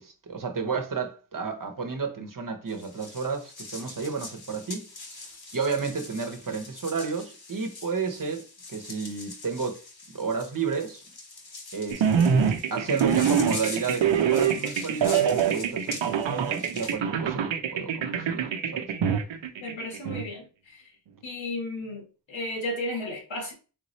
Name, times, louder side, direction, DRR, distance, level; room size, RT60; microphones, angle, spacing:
voice 1, 0.0-4.8 5.5-8.4 8.7-9.8 10.1-11.0 11.7-18.9, right 5 dB, 45° right, 0.9 m, -32 dB
sound 1, 2.7-16.9, left 3 dB, 55° left, 1.2 m, -43 dB
sound 2, 11.9-20.3, right 7 dB, 80° right, 0.6 m, -25 dB
voice 2, 19.6-20.9 21.2-23.5, left 1 dB, 80° left, 1.7 m, -34 dB
3.6 x 3.1 x 4.0 m
wide cardioid pair, 80°, 45 cm